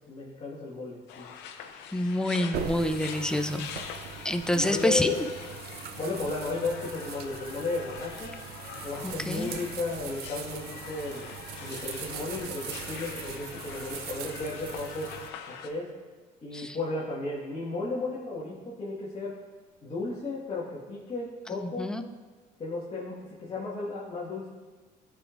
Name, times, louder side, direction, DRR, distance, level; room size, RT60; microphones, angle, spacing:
voice 1, 0.1-1.3 4.5-5.2 6.0-8.3 8.8-11.2 11.6-15.1 15.4-15.9 16.4-19.3 19.8-21.9 22.6-24.5, left 3 dB, 35° left, -7 dB, 1.6 m, -34 dB
sound 1, 1.1-15.7, left 7 dB, 85° left, 0.7 m, -43 dB
voice 2, 1.9-3.7 4.2-5.3 9.0-9.5 16.5-16.8 21.5-22.0, left 1 dB, 5° left, 7 dB, 0.5 m, -28 dB
sound 2, 2.5-15.3, right 8 dB, 70° right, 0.5 m, -41 dB
14.5 x 5.0 x 2.5 m, 1.4 s
cardioid pair, 110°, 17 cm